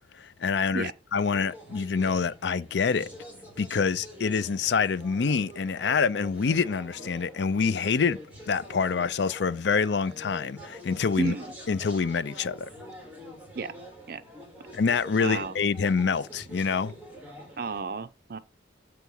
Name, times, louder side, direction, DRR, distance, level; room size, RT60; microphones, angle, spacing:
voice 1, 0.2-3.1 3.6-8.2 8.5-11.3 11.7-12.7 14.7-16.9, left 5 dB, 70° left, 0.5 m, -26 dB
sound 1, 1.1-17.8, equal, 10° right, 2.5 m, -46 dB
voice 2, 11.2-11.5 13.5-13.7 14.1-14.2 15.2-15.5 17.6-18.4, right 4 dB, 50° right, 0.5 m, -32 dB
7.0 x 4.5 x 6.2 m
head